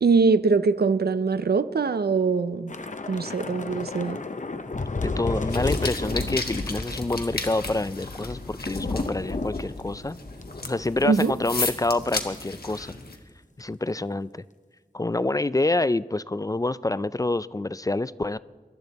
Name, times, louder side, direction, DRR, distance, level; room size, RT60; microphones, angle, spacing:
voice 1, 0.0-2.7 3.1-4.2 11.0-11.3, right 4 dB, 90° right, 13 dB, 0.5 m, -22 dB
Thunder / Rain, 2.7-11.3 11.5-11.7 12.1-12.3, left 3 dB, 50° left, 0.8 m, -32 dB
voice 2, 5.0-10.2 10.7-12.9 13.6-14.4 14.9-18.4, left 2 dB, 20° left, 17 dB, 0.3 m, -27 dB
sound 1, 5.5-13.2, left 3 dB, 75° left, 1.4 m, -35 dB
22.5 x 11.5 x 4.1 m, 1.5 s
wide cardioid pair, 55°, 16 cm